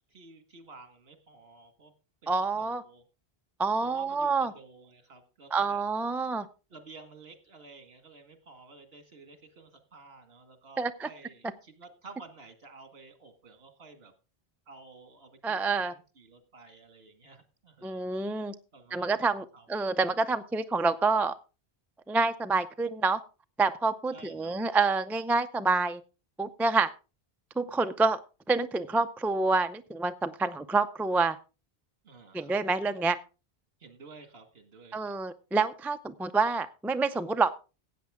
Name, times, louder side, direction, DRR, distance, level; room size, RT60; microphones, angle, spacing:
voice 1, 0.1-1.9 2.2-3.0 3.8-5.8 6.1-6.3 6.7-14.1 14.7-18.0 18.3-19.3 19.5-19.7 24.1-24.6 32.0-32.9 33.8-35.2, right 3 dB, 70° right, 8 dB, 1.9 m, -52 dB
voice 2, 2.3-2.8 3.6-4.5 5.5-6.5 10.8-11.1 15.4-15.9 17.8-18.5 18.9-21.3 22.1-23.2 23.6-26.0 26.4-26.9 27.6-28.2 28.5-31.4 32.3-33.2 34.9-37.5, right 3 dB, 5° right, 9 dB, 0.3 m, -27 dB
16.0 x 8.5 x 3.6 m, 0.32 s
omnidirectional pair, 1.0 m